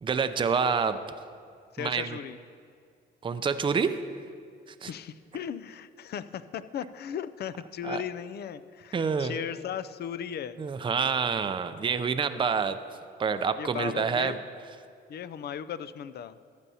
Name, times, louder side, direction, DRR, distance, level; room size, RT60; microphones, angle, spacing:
voice 1, 0.0-1.0 1.8-2.2 3.2-4.0 4.8-4.9 7.8-8.0 8.9-9.3 10.6-12.8 13.2-14.4, right 5 dB, 25° right, 10 dB, 0.5 m, -27 dB
voice 2, 1.7-2.4 4.9-10.6 13.6-14.4 15.1-16.4, left 9 dB, 55° left, 14 dB, 0.4 m, -37 dB
14.5 x 9.7 x 2.8 m, 2.2 s
cardioid pair, 90°, 20 cm